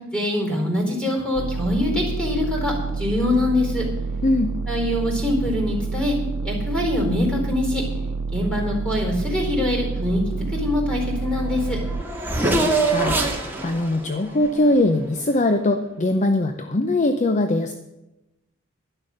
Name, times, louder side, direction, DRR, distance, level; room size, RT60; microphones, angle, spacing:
voice 1, 0.1-3.8 4.7-6.1 6.4-7.8 8.3-10.2 10.5-11.8, left 1 dB, 5° left, 0 dB, 4.3 m, -24 dB
sound 1, 1.3-12.0, right 4 dB, 75° right, 0.5 m, -28 dB
Race car auto racing / Accelerating revving vroom, 11.1-11.2 11.4-15.4, right 2 dB, 10° right, 1.8 m, -25 dB
voice 2, 12.4-17.7, left 2 dB, 35° left, 7 dB, 0.7 m, -22 dB
11.5 x 11.0 x 6.5 m, 0.96 s
head